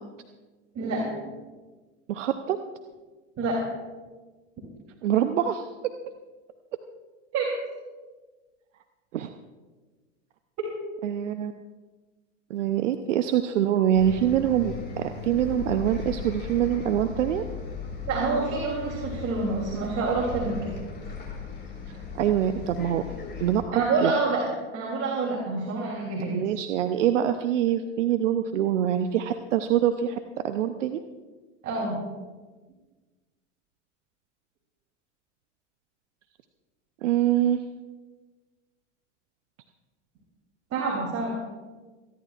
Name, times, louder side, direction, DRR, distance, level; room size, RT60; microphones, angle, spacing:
voice 1, 0.7-1.1 3.4-3.6 7.3-7.5 18.1-20.7 23.7-24.4 24.7-26.4 31.6-32.0 40.7-41.4, right 3 dB, 40° right, -2 dB, 3.2 m, -27 dB
voice 2, 2.1-2.6 5.0-5.7 9.1-9.3 11.0-11.5 12.5-17.4 21.9-23.0 23.4-24.1 26.3-30.2 30.4-31.0 37.0-37.6, right 10 dB, 75° right, 8 dB, 0.8 m, -25 dB
Bus, 13.9-23.6, left 5 dB, 30° left, 4.4 m, -37 dB
29.0 x 11.0 x 2.5 m, 1.3 s
hypercardioid pair, 90°, 37 cm